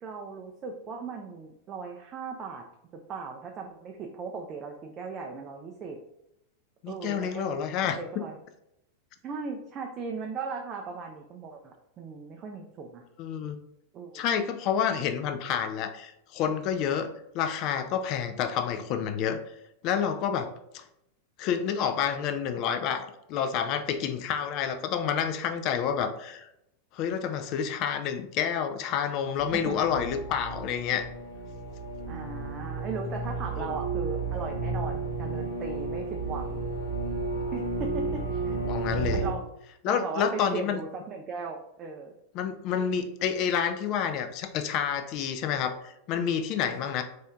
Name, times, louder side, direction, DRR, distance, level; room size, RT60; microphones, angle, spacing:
voice 1, 0.0-2.6 2.9-6.0 6.9-8.4 9.2-13.0 13.9-14.2 29.5-29.8 32.1-36.6 37.5-38.6 39.1-39.4 39.9-42.1 46.8-47.0, right 4 dB, 30° right, 1 dB, 0.4 m, -38 dB
voice 2, 6.8-8.0 13.2-13.6 14.1-19.4 19.8-20.8 21.4-26.5 26.9-31.1 33.6-33.7 38.7-39.2 39.8-40.8 42.3-47.0, left 8 dB, 40° left, 8 dB, 0.4 m, -29 dB
sound 1, 29.4-39.3, right 3 dB, 75° left, 1.1 m, -32 dB
4.1 x 2.7 x 2.3 m, 0.82 s
figure-of-eight pair, 90°, 0 cm